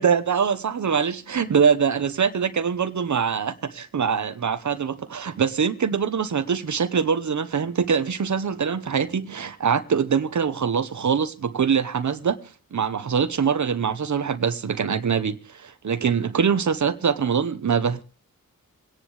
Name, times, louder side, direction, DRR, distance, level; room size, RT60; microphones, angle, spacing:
voice 1, 0.0-18.0, right 6 dB, 65° right, 1.0 m, -23 dB
28.0 x 10.5 x 3.2 m
wide cardioid pair, 90°, 31 cm